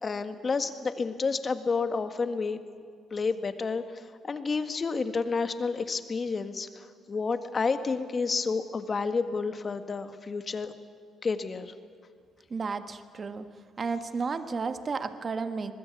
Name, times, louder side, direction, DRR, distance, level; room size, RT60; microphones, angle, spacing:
voice 1, 0.0-2.6 3.1-10.7 11.2-11.7, left 4 dB, 35° left, 9 dB, 1.7 m, -30 dB
voice 2, 12.5-13.4 13.8-15.7, right 4 dB, 40° right, 9 dB, 1.5 m, -32 dB
24.5 x 20.5 x 8.5 m, 2.2 s
cardioid pair, 90°, 0 cm